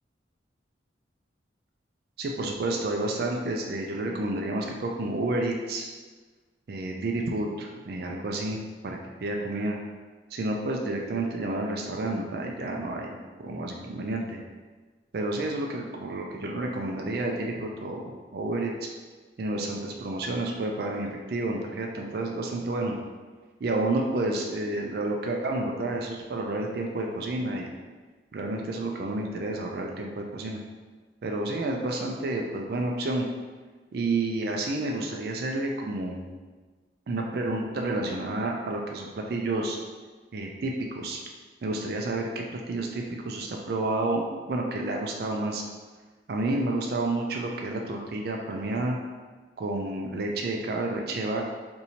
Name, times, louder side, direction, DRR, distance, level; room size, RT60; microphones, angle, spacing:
voice 1, 2.2-5.9 6.7-9.8 10.3-14.4 15.1-18.7 19.4-22.9 23.6-27.7 28.3-30.6 31.2-33.3 33.9-36.3 37.1-39.8 40.3-41.2 41.6-45.6 46.3-49.0 49.6-51.4, right 2 dB, 55° right, 1 dB, 0.4 m, -30 dB
2.7 x 2.6 x 4.2 m, 1.4 s
head